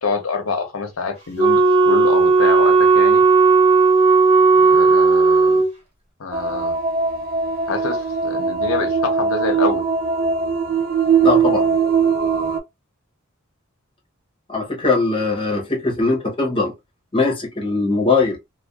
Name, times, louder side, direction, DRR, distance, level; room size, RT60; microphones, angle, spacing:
voice 1, 0.0-3.2 4.5-5.6 6.2-6.8 7.7-9.8, left 4 dB, 85° left, 0.8 m, -26 dB
Wind instrument woodwind instrument, 1.4-5.7, right 4 dB, 25° right, 0.8 m, -14 dB
sound 1, 6.3-12.6, right 5 dB, 45° right, 0.3 m, -20 dB
voice 2, 11.2-11.7 14.5-16.7 17.1-18.4, left 3 dB, 25° left, 0.7 m, -20 dB
2.4 x 2.2 x 2.3 m
head